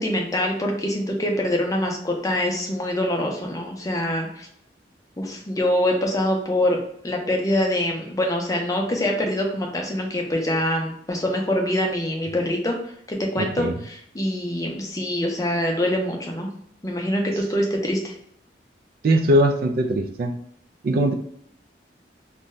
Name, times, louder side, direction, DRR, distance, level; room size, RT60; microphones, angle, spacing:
voice 1, 0.0-4.5 5.2-12.8 13.1-16.5 16.8-18.1, left 1 dB, 20° left, 0 dB, 0.5 m, -24 dB
voice 2, 13.4-13.7 19.0-20.3 20.8-21.1, right 1 dB, 55° right, 5 dB, 0.3 m, -20 dB
2.6 x 2.3 x 3.0 m, 0.68 s
head